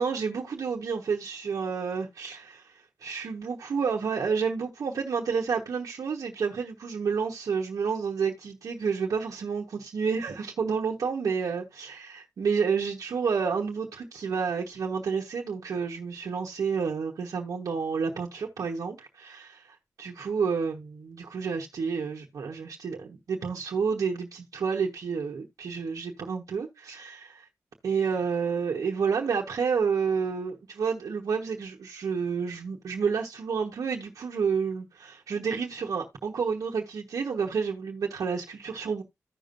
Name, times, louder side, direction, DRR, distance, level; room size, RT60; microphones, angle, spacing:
voice 1, 0.0-2.7 3.0-27.5 27.8-39.0, right 5 dB, 80° right, 1.1 m, -30 dB
15.0 x 5.2 x 2.5 m
cardioid pair, 45°, 6 cm